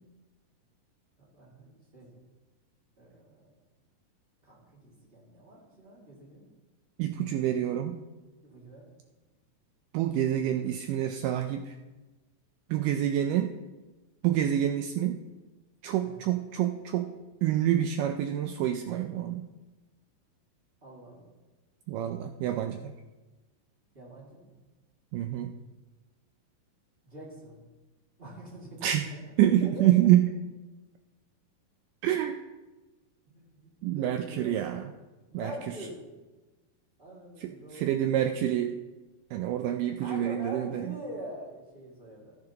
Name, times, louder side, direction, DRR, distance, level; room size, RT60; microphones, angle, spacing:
voice 1, 1.2-2.1 3.0-3.6 4.4-6.5 7.3-7.7 8.4-8.9 16.0-16.2 20.8-21.3 23.9-24.5 27.0-27.6 28.2-29.0 29.6-29.9 33.2-34.7 35.3-36.0 37.0-38.3 40.0-42.4, right 1 dB, 20° right, -5 dB, 1.6 m, -44 dB
voice 2, 7.0-8.0 9.9-11.8 12.7-13.5 14.2-15.2 15.8-17.1 17.4-19.5 21.9-22.9 25.1-25.5 28.8-29.1 29.4-30.3 32.0-32.4 33.8-34.9 35.3-35.5 37.4-38.7 39.3-40.9, right 12 dB, 85° right, 6 dB, 1.9 m, -27 dB
13.5 x 9.8 x 2.9 m, 1.2 s
omnidirectional pair, 4.3 m